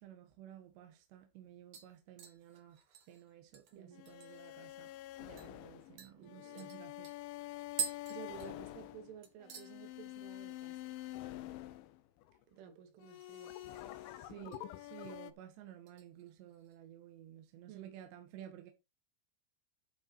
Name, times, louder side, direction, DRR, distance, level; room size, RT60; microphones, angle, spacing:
voice 1, 0.0-2.8 3.1-4.9 5.2-7.1 14.0-18.7, right 11 dB, 70° right, 3.3 m, -53 dB
sound 1, 0.6-0.7 1.1-1.4 1.7-4.6 4.9-5.0 5.4-5.5 6.0-9.0 9.2-9.7 10.1-10.5 10.7-10.8 12.9-13.6 13.9-14.6 15.0-15.3 15.9-16.8 17.1-17.2, right 7 dB, 55° right, 2.6 m, -46 dB
voice 2, 3.7-4.0 6.2-6.7 8.1-11.0 12.5-13.6 14.4-14.6 17.7-18.0, right 9 dB, 85° right, 4.5 m, -53 dB
sound 2, 3.9-12.4 13.0-15.3, left 15 dB, 80° left, 3.2 m, -47 dB
12.0 x 5.2 x 4.5 m
omnidirectional pair, 5.5 m